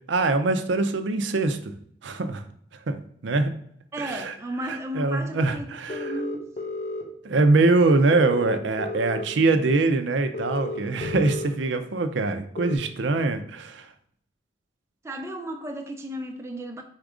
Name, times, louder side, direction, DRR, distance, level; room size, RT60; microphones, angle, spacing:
voice 1, 0.1-1.6 2.0-2.4 2.9-3.5 4.0-4.3 4.7-6.2 7.2-13.9, right 3 dB, 75° right, 8 dB, 0.5 m, -23 dB
voice 2, 3.9-6.5 15.0-16.8, right 1 dB, 15° right, 4 dB, 0.3 m, -34 dB
sound 1, 5.9-7.0 8.1-9.3 10.3-11.5 12.6-12.8, left 2 dB, 40° left, 0.8 m, -32 dB
4.3 x 2.4 x 4.8 m, 0.65 s
head